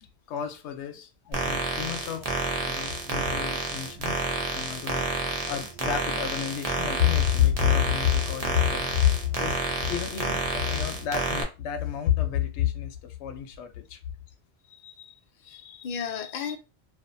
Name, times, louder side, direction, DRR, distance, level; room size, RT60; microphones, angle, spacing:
voice 1, 0.3-2.3 2.6-4.3 4.5-5.1 5.5-14.0, left 10 dB, 90° left, 0.9 m, -28 dB
sound 1, 1.3-11.4, right 3 dB, 45° right, 0.5 m, -30 dB
voice 2, 14.7-15.2 15.4-16.6, left 7 dB, 55° left, 0.6 m, -36 dB
2.5 x 2.4 x 2.5 m
omnidirectional pair, 1.1 m